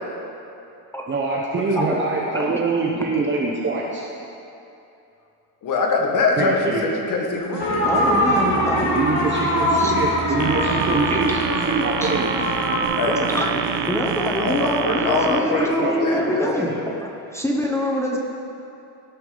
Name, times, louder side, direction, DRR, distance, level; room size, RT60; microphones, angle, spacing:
voice 1, 1.1-4.0 6.4-6.9 8.9-12.3 15.4-16.1, right 3 dB, 30° right, -3 dB, 1.0 m, -24 dB
voice 2, 5.6-7.8 13.0-13.6 14.4-16.9, left 3 dB, 50° left, 1 dB, 1.7 m, -24 dB
sound 1, 7.3-14.8, right 6 dB, 85° right, 1.3 m, -31 dB
sound 2, 7.6-12.8, left 1 dB, 85° left, 2.8 m, -23 dB
voice 3, 7.8-9.0 9.8-9.9 11.1-11.2 12.0-12.1 13.1-13.5 13.9-18.2, equal, 5° left, -2 dB, 0.9 m, -24 dB
sound 3, 10.4-15.4, right 9 dB, 50° right, 0.6 m, -28 dB
17.0 x 8.3 x 4.0 m, 2.8 s
cardioid pair, 145°, 40 cm